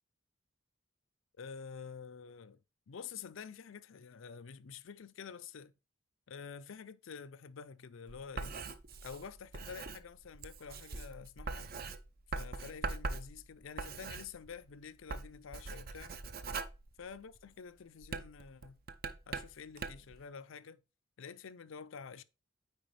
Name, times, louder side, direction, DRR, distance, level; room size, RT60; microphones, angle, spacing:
voice 1, 1.4-2.6 2.9-5.7 6.3-8.6 9.0-11.7 12.3-16.1 17.0-18.8 19.3-20.8 21.2-22.2, left 6 dB, 70° left, 0.5 m, -48 dB
Writing, 8.1-14.7 15.0-17.5 18.0-20.2, right 4 dB, 45° right, 0.6 m, -42 dB
9.1 x 4.5 x 3.2 m
head